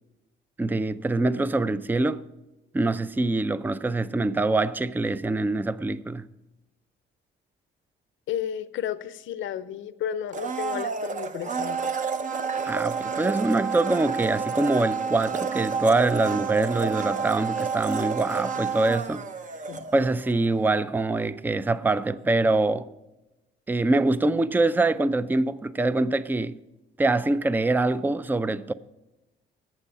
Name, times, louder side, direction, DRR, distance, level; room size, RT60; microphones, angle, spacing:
voice 1, 0.6-2.2 2.7-6.3 12.6-19.2 19.9-22.9 23.7-26.6 27.0-28.7, right 2 dB, 10° right, 0.4 m, -24 dB
voice 2, 8.3-11.9 19.7-19.9 23.8-23.9, left 10 dB, 75° left, 0.6 m, -33 dB
Domestic sounds home sounds, 10.3-20.3 20.6-20.7, right 5 dB, 40° right, 0.8 m, -29 dB
12.0 x 8.2 x 5.5 m
cardioid pair, 90°, 20 cm